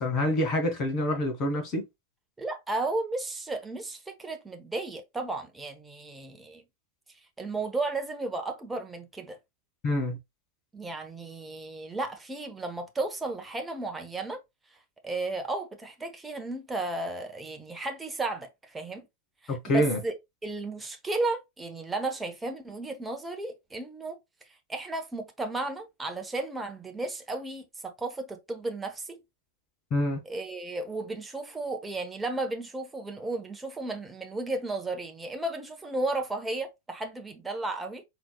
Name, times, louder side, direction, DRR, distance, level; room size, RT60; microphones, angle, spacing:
voice 1, 0.0-1.8 9.8-10.2 19.5-20.0 29.9-30.2, left 1 dB, 30° left, 2.5 m, -26 dB
voice 2, 2.4-6.6 7.4-9.4 10.7-14.4 14.7-14.8 15.0-19.1 19.4-20.1 20.4-24.2 24.7-29.2 30.2-38.0, right 2 dB, 10° right, 1.0 m, -34 dB
4.4 x 4.1 x 2.2 m
figure-of-eight pair, 90°, 0 cm